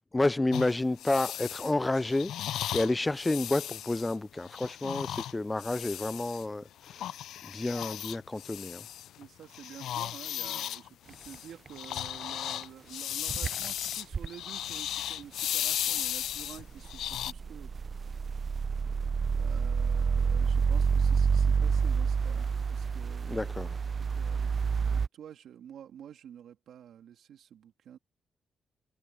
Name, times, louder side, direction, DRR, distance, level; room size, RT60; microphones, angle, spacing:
voice 1, 0.1-7.1 7.4-8.9 23.3-23.8, left 2 dB, 20° left, 0.4 m, -30 dB
sound 1, 0.5-6.5 6.8-9.3 9.5-17.3, left 11 dB, 85° left, 0.5 m, -36 dB
voice 2, 9.2-17.7 19.3-23.4 23.9-24.5 24.8-28.0, right 9 dB, 80° right, 2.5 m, -49 dB
sound 2, 11.1-11.4 11.7-12.3 12.6-12.7 13.3-14.3 16.4-25.1, right 5 dB, 50° right, 0.5 m, -28 dB
cardioid pair, 75°, 0 cm